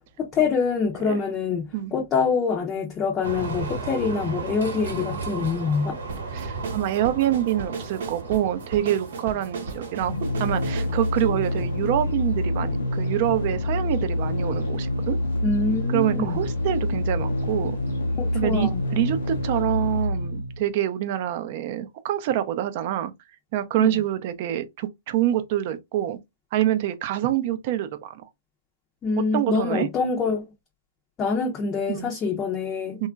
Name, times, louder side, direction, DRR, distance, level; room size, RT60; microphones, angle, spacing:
voice 1, 0.2-6.0 15.4-16.4 18.2-18.8 23.8-23.9 29.0-30.5 31.2-33.1, left 5 dB, 25° left, 0.5 m, -25 dB
sound 1, 3.2-20.1, right 3 dB, 90° right, 1.0 m, -38 dB
sound 2, 6.1-12.4, right 5 dB, 75° right, 0.8 m, -37 dB
voice 2, 6.3-10.1 10.4-15.2 15.9-17.7 18.3-23.1 23.5-26.2 26.5-28.1 29.3-29.9 31.9-32.1 33.0-33.1, right 12 dB, 50° right, 0.4 m, -26 dB
sound 3, 10.0-20.7, left 1 dB, 85° left, 0.5 m, -27 dB
2.9 x 2.3 x 2.2 m
hypercardioid pair, 140°, 0 cm